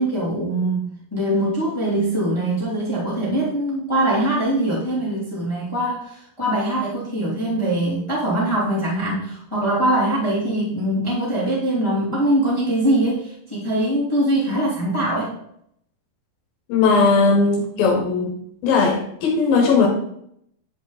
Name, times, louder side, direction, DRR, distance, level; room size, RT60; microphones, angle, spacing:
voice 1, 0.0-15.3, right 1 dB, 10° left, -7 dB, 2.2 m, -22 dB
voice 2, 16.7-18.4 18.6-19.9, left 4 dB, 75° left, 0 dB, 2.9 m, -18 dB
10.5 x 5.1 x 4.0 m, 0.71 s
omnidirectional pair, 4.2 m